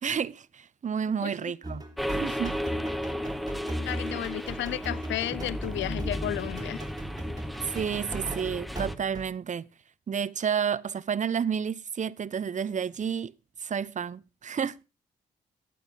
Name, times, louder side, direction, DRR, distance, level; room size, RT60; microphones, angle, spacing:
voice 1, 0.0-1.8 2.1-2.6 7.6-9.7 10.1-13.3 13.6-14.8, right 7 dB, 40° right, 0.6 m, -30 dB
sound 1, 1.6-9.3, right 1 dB, 20° right, 3.4 m, -38 dB
sound 2, 2.0-9.0, equal, ahead, 1.1 m, -34 dB
voice 2, 3.8-6.8, left 14 dB, 70° left, 0.5 m, -33 dB
11.5 x 8.9 x 3.9 m
supercardioid pair, 50°, 20 cm